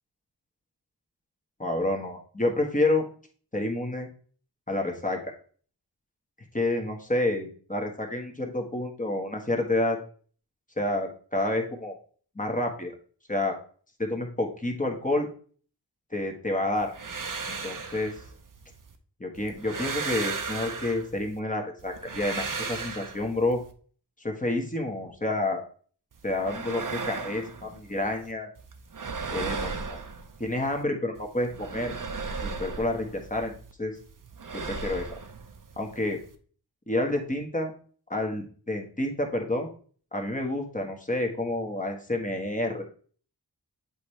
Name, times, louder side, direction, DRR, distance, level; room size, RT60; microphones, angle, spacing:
voice 1, 1.6-3.0 3.5-4.1 4.7-5.3 6.5-10.0 10.8-11.9 12.3-12.9 13.3-13.5 14.0-15.3 16.1-16.9 17.5-18.1 19.2-23.6 24.2-25.6 26.2-28.5 29.3-30.0 30.4-31.9 32.4-33.5 33.8-33.9 34.5-35.0 35.8-36.2 36.9-37.7 38.1-39.7 40.1-42.8, left 2 dB, 20° left, 2 dB, 1.4 m, -29 dB
sound 1, 16.8-19.0 19.4-21.4 21.8-23.7 26.1-28.3 28.6-30.8 31.2-33.7 34.0-36.4, right 4 dB, 50° right, 0.8 m, -36 dB
8.2 x 4.3 x 3.3 m, 0.44 s
wide cardioid pair, 75°, 41 cm